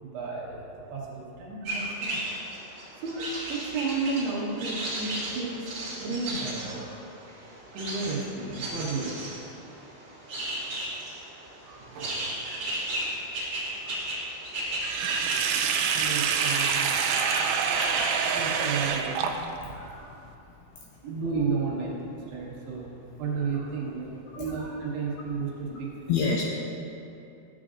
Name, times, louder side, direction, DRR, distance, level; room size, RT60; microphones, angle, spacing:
voice 1, 0.0-2.2 2.7-5.7 6.0-7.0 7.7-9.5 11.6-12.4 13.8-14.0 14.8-15.0 15.8-17.0 18.2-19.2 19.7-20.1 21.0-25.9, right 4 dB, 75° right, -4 dB, 3.1 m, -33 dB
sound 1, 1.6-18.4, right 1 dB, 50° right, 1.9 m, -35 dB
Sink (filling or washing), 14.8-19.7, right 7 dB, 90° right, 2.8 m, -26 dB
voice 2, 19.7-21.1 24.3-24.5 25.7-25.8 26.1-26.4, left 5 dB, 85° left, -1 dB, 2.1 m, -31 dB
13.0 x 7.5 x 2.5 m, 2.7 s
omnidirectional pair, 5.0 m